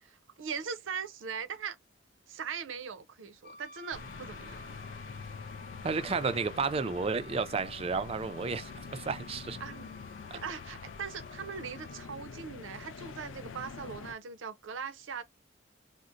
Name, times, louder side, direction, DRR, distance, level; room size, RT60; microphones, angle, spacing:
voice 1, 0.0-1.8 2.3-4.6 9.6-10.0 10.3-15.2, right 6 dB, 85° right, 0.6 m, -40 dB
Wind instrument woodwind instrument, 3.4-12.1, left 1 dB, 45° left, 0.7 m, -52 dB
sound 1, 3.9-14.1, left 5 dB, 80° left, 0.4 m, -45 dB
voice 2, 5.8-9.6 10.3-10.4, right 4 dB, 30° right, 0.3 m, -32 dB
3.9 x 2.1 x 2.5 m
head